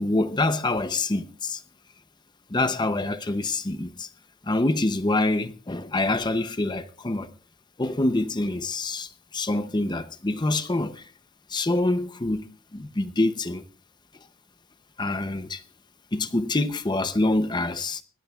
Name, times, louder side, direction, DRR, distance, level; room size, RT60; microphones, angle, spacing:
voice 1, 0.0-1.6 2.5-4.1 4.5-7.3 7.8-11.0 11.5-12.5 12.7-13.6 15.0-15.6 16.1-18.0, left 2 dB, 20° left, 0.6 m, -26 dB
21.0 x 17.0 x 2.4 m
head